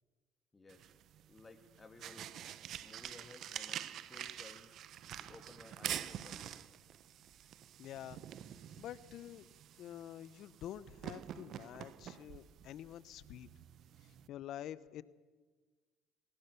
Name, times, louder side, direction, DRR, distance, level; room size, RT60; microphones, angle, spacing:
voice 1, 0.5-2.4 2.8-4.7 5.2-6.6, left 3 dB, 25° left, 7 dB, 2.7 m, -57 dB
sound 1, 0.7-14.3, right 10 dB, 60° right, 1.0 m, -47 dB
voice 2, 7.8-8.2 8.8-9.5 9.8-13.5 14.3-15.0, left 11 dB, 60° left, 18 dB, 0.9 m, -47 dB
20.5 x 18.5 x 7.0 m, 1.4 s
hypercardioid pair, 70°, 0 cm